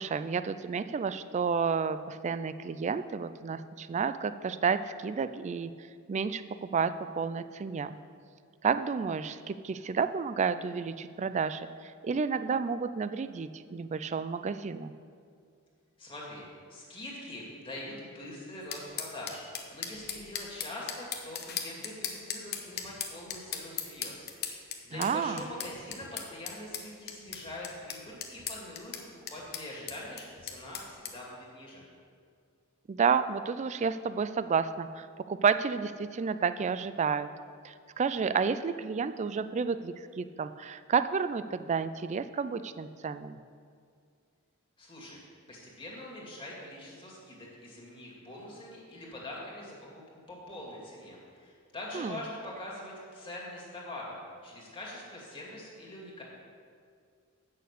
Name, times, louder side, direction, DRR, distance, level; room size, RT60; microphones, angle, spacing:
voice 1, 0.0-5.7 6.1-8.0 8.6-14.9 24.9-25.4 32.9-37.3 37.6-43.4 51.9-52.2, right 5 dB, 35° right, 12 dB, 0.3 m, -31 dB
voice 2, 16.0-29.0 29.3-31.8 44.8-45.2 45.5-56.2, left 1 dB, 25° left, -4 dB, 2.3 m, -44 dB
sound 1, 18.7-31.1, left 8 dB, 50° left, 0.9 m, -39 dB
8.4 x 6.6 x 6.6 m, 2.2 s
head